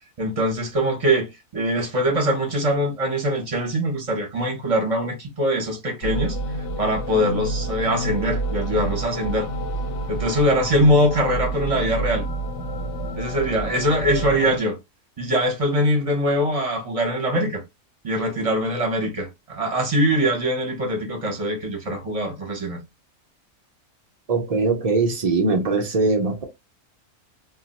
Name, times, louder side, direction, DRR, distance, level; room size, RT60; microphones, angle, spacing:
voice 1, 0.2-6.4 6.8-9.5 10.1-12.3 13.2-14.8 15.2-17.6 18.0-22.8, equal, 30° right, 0.7 m, -22 dB
sound 1, 6.0-14.6, right 1 dB, 65° left, 0.8 m, -29 dB
voice 2, 24.3-26.4, right 3 dB, 80° right, 0.3 m, -21 dB
2.3 x 2.1 x 3.9 m
omnidirectional pair, 1.5 m